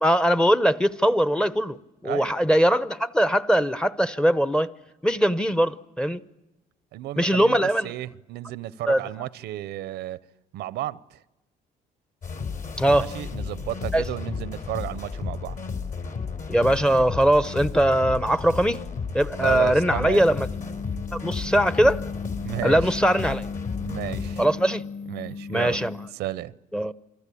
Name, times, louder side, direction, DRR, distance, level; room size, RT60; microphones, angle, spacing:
voice 1, 0.0-4.7 5.0-6.2 7.2-7.9 8.9-9.0 12.8-13.1 13.9-14.0 16.5-18.8 19.1-20.5 21.1-22.0 22.6-23.4 24.4-24.8 25.5-26.0 26.7-26.9, right 1 dB, 5° left, 0.8 m, -21 dB
voice 2, 6.9-10.2 10.5-11.2 13.0-15.6 19.4-20.2 22.4-23.0 23.8-24.4 25.1-25.9 26.1-26.5, right 14 dB, 80° right, 0.8 m, -33 dB
sound 1, 12.2-24.5, left 5 dB, 55° left, 4.5 m, -33 dB
sound 2, 20.1-26.1, left 5 dB, 35° left, 1.8 m, -36 dB
28.0 x 20.5 x 8.5 m
cardioid pair, 110°, 17 cm